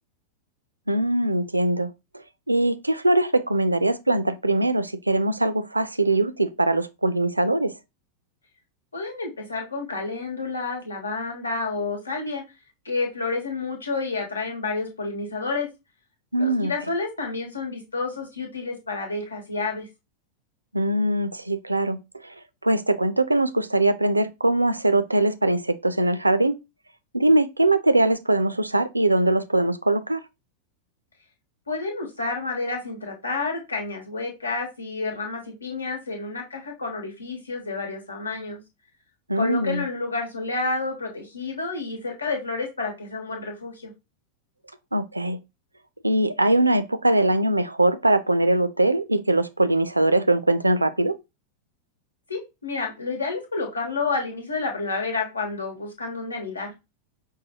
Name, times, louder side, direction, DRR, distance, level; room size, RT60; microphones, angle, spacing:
voice 1, 0.9-1.9 2.5-7.7 16.3-16.7 20.7-22.3 22.6-26.6 27.1-30.2 39.3-39.8 44.9-45.4 46.0-51.2, right 2 dB, 85° right, 0.3 m, -22 dB
voice 2, 8.9-12.4 12.8-15.7 16.4-19.9 31.7-38.6 39.3-43.9 52.3-56.7, left 3 dB, 75° left, 1.3 m, -30 dB
5.5 x 2.2 x 2.9 m
figure-of-eight pair, 90°, 0 cm